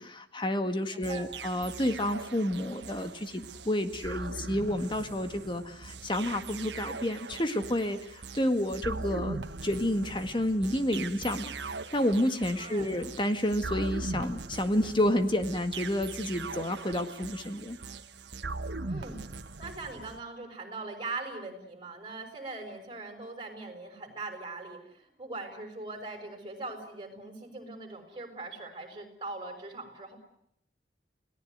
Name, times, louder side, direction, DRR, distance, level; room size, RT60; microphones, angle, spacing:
voice 1, 0.0-11.5 11.9-17.8, left 1 dB, 30° left, 8 dB, 1.8 m, -30 dB
voice 2, 0.9-1.3 12.6-12.9 18.9-19.2 19.6-30.2, right 3 dB, 25° right, 5 dB, 6.0 m, -41 dB
sound 1, 1.0-20.2, right 3 dB, 85° right, 1.4 m, -40 dB
29.5 x 18.5 x 9.4 m, 0.75 s
head